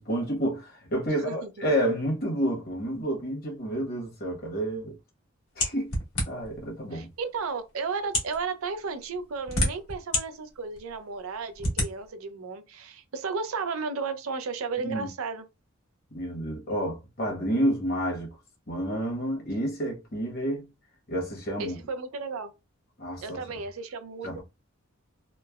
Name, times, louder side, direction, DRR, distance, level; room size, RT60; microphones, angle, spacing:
voice 1, 0.0-5.0 5.6-5.9 6.3-7.1 14.8-15.1 16.1-18.3 18.7-20.7 21.1-21.8 23.0-23.4 24.2-24.4, right 1 dB, 45° left, 1.0 m, -29 dB
voice 2, 1.1-1.5 6.9-15.4 21.6-22.5 23.2-24.4, right 4 dB, 90° right, 0.5 m, -34 dB
sound 1, 5.6-6.6 7.4-7.5 8.0-8.4 9.1-10.2 10.7-10.8 11.6-11.9, left 1 dB, 80° left, 1.2 m, -27 dB
3.1 x 2.0 x 2.3 m
head